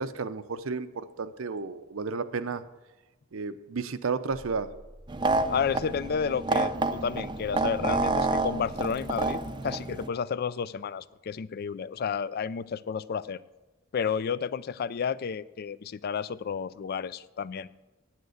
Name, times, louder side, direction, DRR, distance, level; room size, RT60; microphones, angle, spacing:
voice 1, 0.0-2.6 3.3-4.7, right 4 dB, 75° right, 12 dB, 0.6 m, -32 dB
sound 1, 4.3-9.4, equal, 10° left, 0.8 m, -47 dB
sound 2, 5.1-10.1, right 3 dB, 20° right, 0.5 m, -29 dB
voice 2, 5.5-13.4 13.9-17.7, left 6 dB, 50° left, 18 dB, 0.3 m, -31 dB
9.4 x 9.1 x 6.4 m, 1.1 s
head